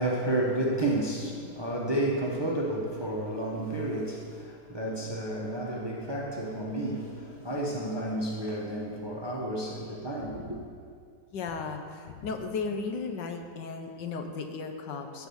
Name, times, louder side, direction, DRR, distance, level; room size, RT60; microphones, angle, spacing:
voice 1, 0.0-10.6, right 1 dB, 20° right, -2 dB, 0.8 m, -31 dB
voice 2, 11.3-15.3, left 4 dB, 75° left, 5 dB, 1.5 m, -35 dB
13.5 x 4.8 x 7.1 m, 2.2 s
omnidirectional pair, 2.0 m